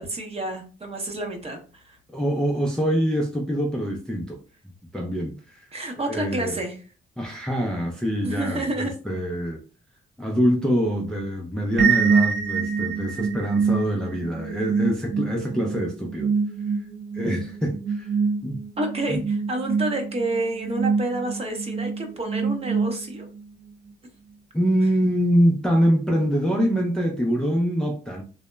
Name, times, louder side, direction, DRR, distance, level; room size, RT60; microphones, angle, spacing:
voice 1, 0.0-2.0 5.7-6.8 8.2-8.9 18.8-23.3, right 2 dB, 30° right, 3 dB, 0.7 m, -29 dB
voice 2, 2.1-4.4 4.9-5.7 6.1-6.6 7.2-9.6 10.2-16.3 17.1-18.1 18.4-18.6 19.1-19.2 24.5-28.2, equal, 5° left, 0 dB, 0.4 m, -24 dB
sound 1, 11.8-23.4, right 5 dB, 65° right, 0.6 m, -26 dB
2.8 x 2.1 x 2.2 m, 0.35 s
cardioid pair, 90°, 20 cm